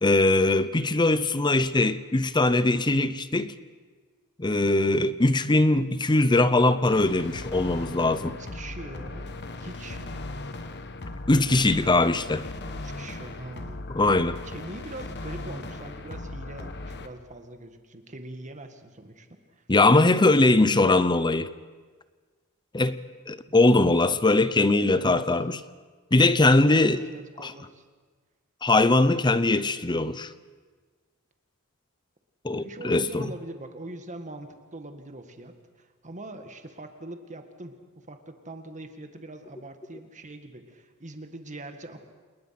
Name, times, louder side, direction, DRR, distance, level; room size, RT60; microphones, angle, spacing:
voice 1, 0.0-3.5 4.4-8.3 11.3-12.5 13.9-14.4 19.7-21.5 22.7-23.0 23.3-25.6 26.1-27.0 27.4-27.5 28.6-30.3 32.4-33.3, left 2 dB, 20° left, 0.7 m, -21 dB
sound 1, 6.9-17.1, left 2 dB, 50° left, 1.3 m, -38 dB
voice 2, 8.2-10.2 12.7-13.9 14.4-19.6 20.2-20.7 23.5-23.6 26.5-27.8 32.5-42.0, right 2 dB, 35° right, 1.9 m, -42 dB
28.5 x 20.0 x 6.0 m
head